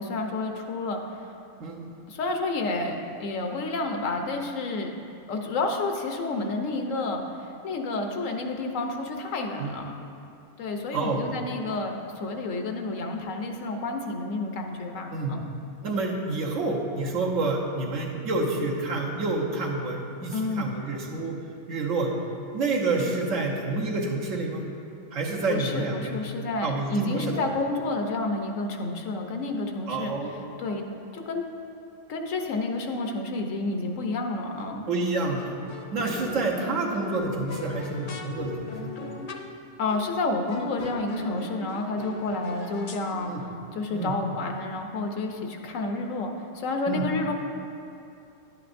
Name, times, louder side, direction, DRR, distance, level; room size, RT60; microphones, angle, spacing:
voice 1, 0.0-1.4 2.1-4.9 5.3-9.9 10.6-15.5 20.3-20.7 25.5-30.8 31.1-31.4 32.1-34.8 39.8-47.3, left 2 dB, 90° left, 3 dB, 1.2 m, -30 dB
voice 2, 15.8-21.4 21.7-22.1 22.5-24.6 25.1-26.2 26.6-27.3 29.9-30.3 34.9-35.5 35.9-38.9 43.3-43.4 43.9-44.1 46.9-47.0, right 3 dB, 85° right, -1 dB, 1.4 m, -28 dB
sound 1, 34.6-35.0 35.4-39.6 39.9-40.2 40.5-43.1, left 3 dB, 55° left, 0.6 m, -39 dB
11.0 x 8.4 x 2.6 m, 2.6 s
omnidirectional pair, 1.3 m